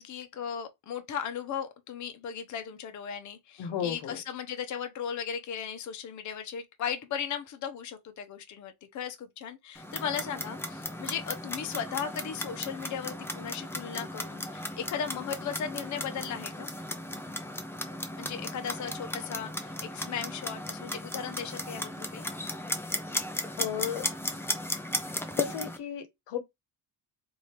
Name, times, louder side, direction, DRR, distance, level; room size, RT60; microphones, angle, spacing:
voice 1, 0.0-16.7 18.2-22.3, left 8 dB, 45° left, 0.7 m, -37 dB
voice 2, 3.6-4.2 23.6-24.1 25.4-26.4, left 9 dB, 90° left, 1.0 m, -33 dB
Clock, 9.7-25.8, left 1 dB, 5° left, 0.3 m, -36 dB
3.3 x 2.7 x 4.3 m
cardioid pair, 165°, 41 cm